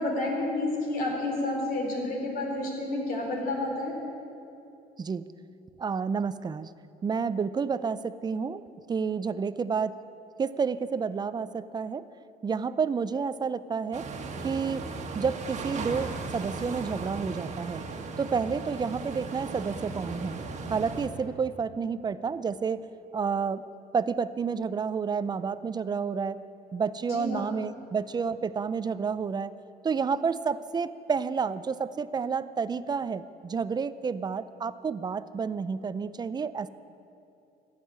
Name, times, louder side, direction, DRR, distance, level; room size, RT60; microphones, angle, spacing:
voice 1, 0.0-4.0 27.1-27.5, left 2 dB, 60° left, 0 dB, 3.8 m, -30 dB
voice 2, 5.8-6.7 7.0-8.6 8.9-10.0 10.4-12.0 12.4-14.1 14.4-14.9 15.1-17.8 18.2-20.4 20.7-22.8 23.1-23.6 23.9-26.4 26.7-29.5 29.8-36.7, right 5 dB, 25° right, 15 dB, 0.4 m, -30 dB
sound 1, 13.9-21.1, right 3 dB, 45° right, 1.5 m, -37 dB
14.0 x 6.6 x 10.0 m, 2.7 s
cardioid pair, 110°, 17 cm